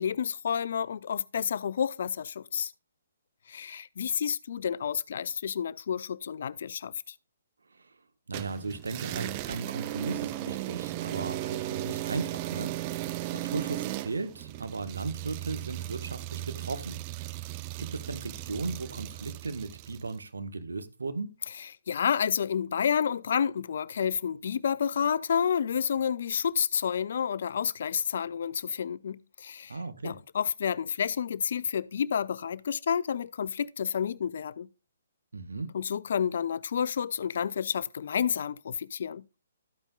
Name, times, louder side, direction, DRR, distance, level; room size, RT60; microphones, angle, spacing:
voice 1, 0.0-2.7 3.5-7.1 21.9-29.8 30.0-34.7 35.7-39.2, left 7 dB, 50° left, 0.4 m, -30 dB
sound 1, 8.3-20.1, right 15 dB, 25° right, 0.4 m, -36 dB
voice 2, 8.3-17.0 17.8-21.3 29.7-30.1 35.3-35.7, right 3 dB, 65° right, 1.2 m, -36 dB
13.0 x 8.8 x 2.3 m
figure-of-eight pair, 130°, 0 cm